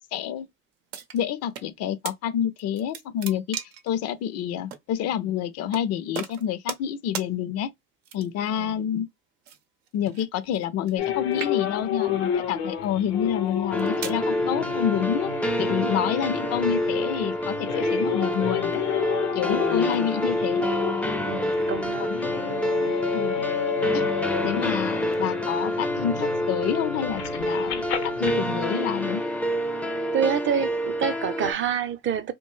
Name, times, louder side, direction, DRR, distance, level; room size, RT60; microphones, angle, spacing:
voice 1, 0.1-0.5 1.1-3.6 3.8-7.7 8.1-9.1 9.9-15.3 15.6-18.9 19.3-20.7 22.0-22.2 23.1-23.5 23.9-24.1 24.4-29.2, left 10 dB, 55° left, 0.5 m, -28 dB
sound 1, 0.9-1.7 2.0-2.2 2.6-3.9 4.7-4.8 5.7-5.9 6.1-6.9 7.1-7.3 8.0-8.5 9.4-11.1 11.3-11.9 12.6-12.8 13.5-14.2, right 9 dB, 90° right, 0.7 m, -37 dB
voice 2, 8.5-8.8 19.5-20.1 21.3-22.2 30.1-32.3, right 8 dB, 40° right, 0.6 m, -28 dB
sound 2, 11.0-28.3, left 8 dB, 80° left, 0.8 m, -31 dB
sound 3, 13.7-31.5, left 1 dB, 5° left, 0.4 m, -27 dB
2.6 x 2.2 x 3.0 m
supercardioid pair, 85°, 31 cm